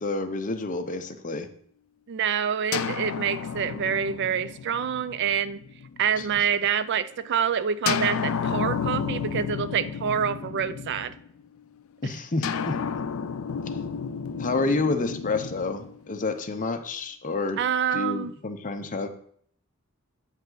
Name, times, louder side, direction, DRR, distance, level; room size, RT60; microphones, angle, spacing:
voice 1, 0.0-1.5 6.2-6.3 12.0-12.8 14.4-17.6 17.9-19.1, left 3 dB, 35° left, 7 dB, 0.7 m, -29 dB
voice 2, 2.1-5.6 6.0-11.1 12.0-12.1 17.6-18.3, right 8 dB, 55° right, 15 dB, 0.3 m, -27 dB
sound 1, 2.7-6.5 7.9-11.4 12.4-16.6, left 6 dB, 65° left, 0.4 m, -32 dB
8.5 x 5.4 x 3.9 m, 0.62 s
head